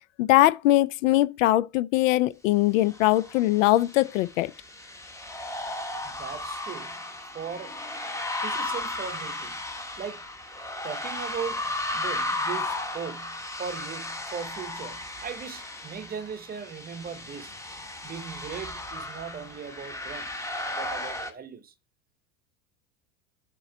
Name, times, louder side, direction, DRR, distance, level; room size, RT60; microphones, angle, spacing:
voice 1, 0.2-4.5, left 16 dB, 65° left, 0.5 m, -21 dB
sound 1, 2.9-21.3, left 2 dB, 5° left, 1.1 m, -35 dB
voice 2, 6.0-7.8 8.4-9.7 10.0-10.3 10.8-11.6 11.9-17.5 18.0-20.3 20.7-21.7, right 7 dB, 20° right, 0.8 m, -38 dB
7.6 x 3.0 x 6.0 m
hypercardioid pair, 85°, 43 cm